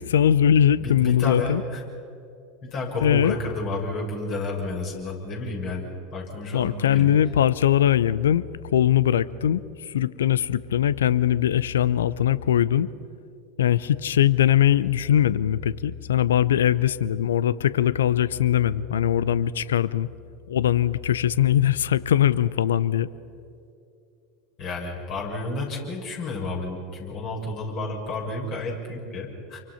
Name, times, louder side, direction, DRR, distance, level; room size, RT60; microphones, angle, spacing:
voice 1, 0.0-1.6 3.0-3.4 6.5-8.4 8.7-12.9 13.6-20.1 20.5-23.1, left 10 dB, 75° left, 19 dB, 0.6 m, -21 dB
voice 2, 0.8-1.8 2.6-7.1 24.6-29.6, left 2 dB, 50° left, -1 dB, 6.7 m, -31 dB
28.5 x 24.0 x 5.8 m, 2.6 s
hypercardioid pair, 80°, 0 cm